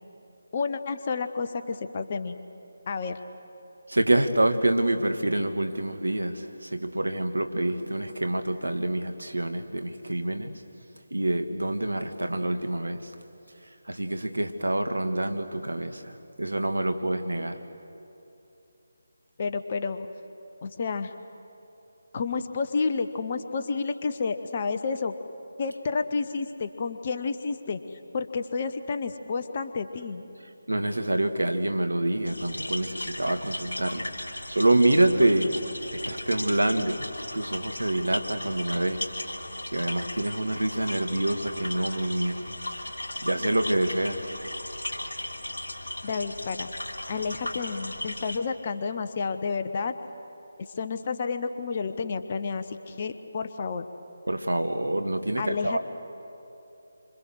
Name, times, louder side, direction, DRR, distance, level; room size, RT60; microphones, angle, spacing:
voice 1, 0.5-2.4 2.9-3.2 19.4-20.1 20.6-21.1 22.1-25.1 25.6-30.2 46.0-46.7 47.1-50.0 50.6-53.9 55.4-55.8, left 4 dB, 30° left, 8 dB, 1.0 m, -30 dB
voice 2, 3.9-10.6 11.1-13.1 13.9-17.6 30.7-34.1 34.5-35.6 35.9-39.1 39.7-42.4 43.2-44.2 54.3-55.8, right 1 dB, 70° right, 7 dB, 1.7 m, -26 dB
sound 1, 32.2-48.4, left 1 dB, 65° left, 3.0 m, -36 dB
27.0 x 26.0 x 6.5 m, 2.8 s
figure-of-eight pair, 155°, 0 cm